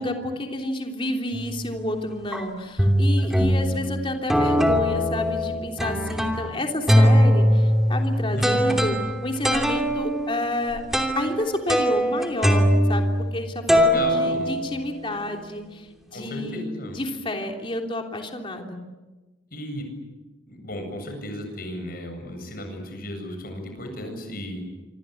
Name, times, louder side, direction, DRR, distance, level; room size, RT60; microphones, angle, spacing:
voice 1, 0.0-10.8 11.1-16.7 16.9-18.8, left 1 dB, 25° left, 2 dB, 3.3 m, -30 dB
sound 1, 1.3-1.7 2.3-2.4 2.8-3.9 4.3-6.5 6.9-13.4 13.7-15.1, equal, ahead, 2.8 m, -21 dB
voice 2, 8.3-8.8 13.7-14.6 16.1-17.0 19.5-19.9 20.5-24.6, left 1 dB, 45° left, 5 dB, 8.0 m, -35 dB
26.5 x 26.5 x 8.5 m, 1.2 s
head